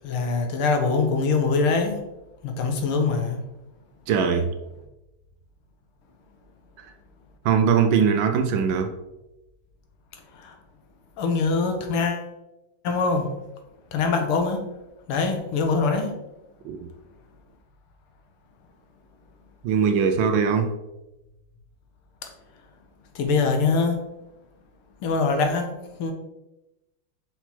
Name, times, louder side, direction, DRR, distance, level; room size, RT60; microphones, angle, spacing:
voice 1, 0.0-2.0 2.4-3.4 11.2-12.2 12.8-13.3 13.9-14.6 15.1-16.1 23.2-24.0 25.0-25.7 26.0-26.1, left 4 dB, 85° left, 5 dB, 1.8 m, -23 dB
voice 2, 4.1-4.5 6.8-6.9 7.4-8.9 16.6-16.8 19.6-20.7, right 6 dB, 75° right, 6 dB, 1.2 m, -21 dB
5.6 x 4.3 x 4.3 m, 0.96 s
omnidirectional pair, 2.4 m